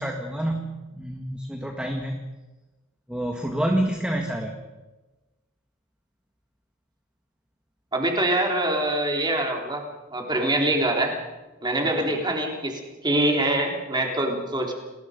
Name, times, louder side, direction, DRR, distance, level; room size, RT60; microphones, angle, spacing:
voice 1, 0.0-2.2 3.1-4.6, right 1 dB, 5° right, 2 dB, 1.9 m, -28 dB
voice 2, 7.9-9.8 10.1-11.1 11.6-14.7, right 1 dB, 20° right, 1 dB, 3.9 m, -24 dB
29.5 x 20.5 x 5.3 m, 1.1 s
head